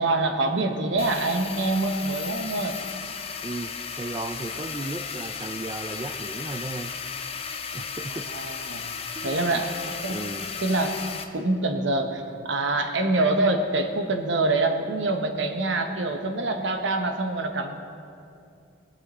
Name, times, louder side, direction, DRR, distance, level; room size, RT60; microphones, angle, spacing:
voice 1, 0.0-2.8 8.1-8.9 9.2-9.8 10.0-10.3 10.6-17.8, right 2 dB, 70° right, 6 dB, 1.0 m, -25 dB
sound 1, 1.0-11.2, left 6 dB, 30° left, 0.6 m, -35 dB
voice 2, 3.4-6.9 7.7-8.3 9.1-9.6 10.1-10.5, right 2 dB, 20° right, 7 dB, 0.3 m, -35 dB
20.0 x 7.4 x 4.3 m, 2.5 s
head